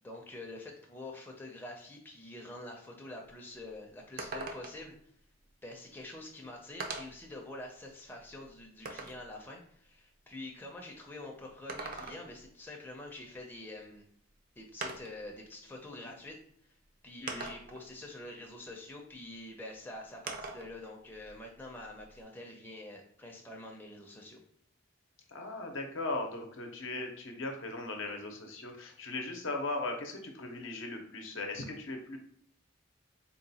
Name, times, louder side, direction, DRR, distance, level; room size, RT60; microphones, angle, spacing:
voice 1, 0.0-5.0 5.6-14.1 14.6-16.4 16.7-16.8 17.0-24.4, left 2 dB, 10° left, -1 dB, 0.5 m, -46 dB
sound 1, 3.3-3.4 3.7-3.8 4.2-4.9 6.0-6.1 6.8-7.3 7.9-9.3 11.5-12.5 14.0-14.1 14.8-15.3 16.3-16.4 17.3-17.9 20.3-20.7 21.1-22.2, right 3 dB, 45° right, 0.4 m, -42 dB
voice 2, 25.3-32.2, left 2 dB, 75° left, 3 dB, 0.7 m, -38 dB
3.7 x 2.2 x 4.1 m, 0.64 s
head